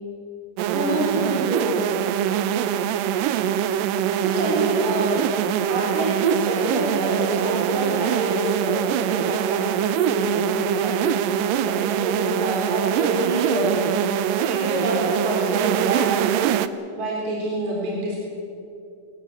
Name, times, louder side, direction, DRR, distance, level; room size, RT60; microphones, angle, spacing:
sound 1, 0.6-16.7, right 9 dB, 75° right, 2.2 m, -23 dB
voice 1, 0.7-1.8 4.1-5.3 5.7-11.2 11.6-14.0 14.4-16.3 16.9-18.2, right 1 dB, 50° right, -3 dB, 5.1 m, -27 dB
24.5 x 18.0 x 8.3 m, 2.6 s
omnidirectional pair, 4.4 m